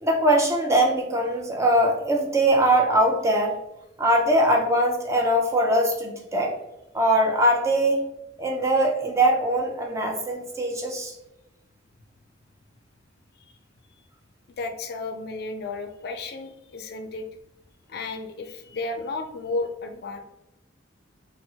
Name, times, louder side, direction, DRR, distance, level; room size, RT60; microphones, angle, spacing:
voice 1, 0.0-3.6 4.0-6.6 6.9-8.0 8.4-11.1, right 1 dB, 15° right, 1 dB, 0.4 m, -21 dB
voice 2, 14.6-17.3 17.9-20.2, left 3 dB, 60° left, 6 dB, 0.4 m, -33 dB
4.3 x 2.0 x 2.7 m, 0.91 s
head